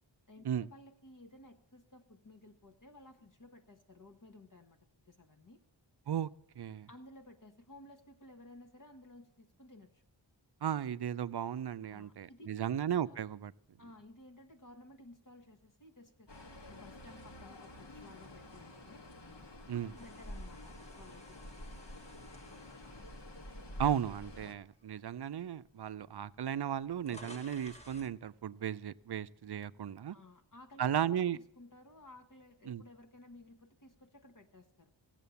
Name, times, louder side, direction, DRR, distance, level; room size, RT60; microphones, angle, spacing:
voice 1, 0.3-5.6 6.9-10.0 11.8-12.7 13.0-13.2 13.8-16.3 16.7-19.0 19.7-21.4 30.1-34.9, left 1 dB, 45° left, 1.1 m, -56 dB
voice 2, 6.6-6.9 10.6-13.5 19.7-19.9 23.8-30.2 30.8-31.4 32.7-32.8, right 9 dB, 60° right, 0.5 m, -35 dB
sound 1, 16.3-24.5, left 1 dB, 65° left, 1.6 m, -49 dB
sound 2, 20.0-24.2 24.7-24.9 25.8-25.9 26.1-28.2, left 1 dB, 15° left, 0.9 m, -56 dB
15.5 x 7.5 x 6.9 m
wide cardioid pair, 60°, 46 cm